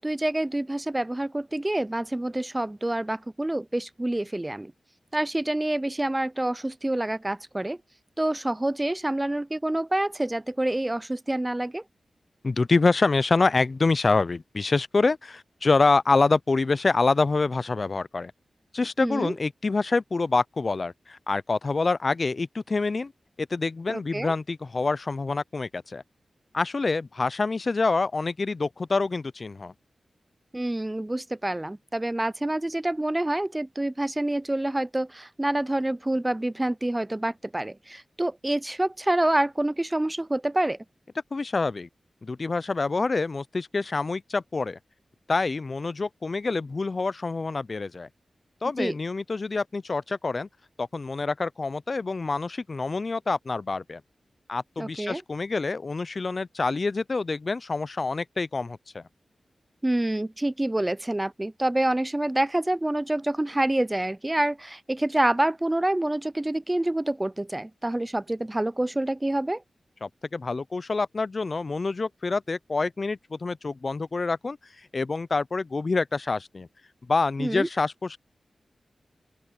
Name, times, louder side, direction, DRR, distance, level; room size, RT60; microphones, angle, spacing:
voice 1, 0.0-4.7 5.1-7.8 8.2-11.8 19.0-19.3 23.9-24.3 30.5-40.8 48.8-48.9 54.8-55.2 59.8-69.6 77.4-77.7, right 1 dB, 20° right, 0.5 m, -27 dB
voice 2, 12.4-18.3 18.7-23.1 23.4-26.0 26.5-29.7 41.3-41.9 42.2-44.8 45.3-48.1 48.6-50.5 50.8-54.0 54.5-59.0 70.0-74.6 74.9-76.7 77.1-78.2, left 3 dB, 55° left, 0.5 m, -26 dB
open air
cardioid pair, 45°, 0 cm